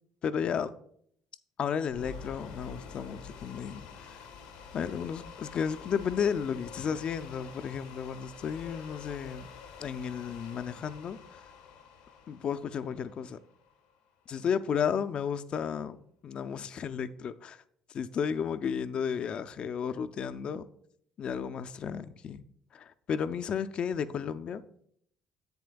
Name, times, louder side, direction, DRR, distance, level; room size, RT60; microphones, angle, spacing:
voice 1, 0.2-0.7 1.6-4.2 4.7-9.5 9.8-11.4 12.3-13.4 14.3-17.6 17.9-20.6 21.2-22.4 22.7-24.6, left 7 dB, 55° left, 0.4 m, -33 dB
sound 1, 1.9-14.0, left 6 dB, 85° left, 0.9 m, -48 dB
10.5 x 7.6 x 2.3 m
hypercardioid pair, 60°, 2 cm